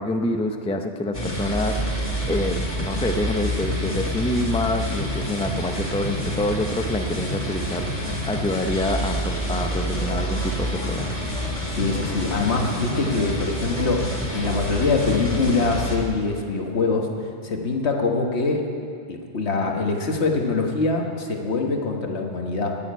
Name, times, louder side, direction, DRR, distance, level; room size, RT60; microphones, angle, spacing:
voice 1, 0.0-11.1, left 1 dB, 10° left, 5 dB, 0.4 m, -27 dB
sound 1, 1.1-16.0, equal, 30° left, 2.0 m, -27 dB
voice 2, 11.7-14.1 14.3-17.1 17.4-18.7 19.1-22.8, left 3 dB, 75° left, 2 dB, 1.5 m, -24 dB
9.5 x 8.8 x 9.3 m, 2.4 s
omnidirectional pair, 1.2 m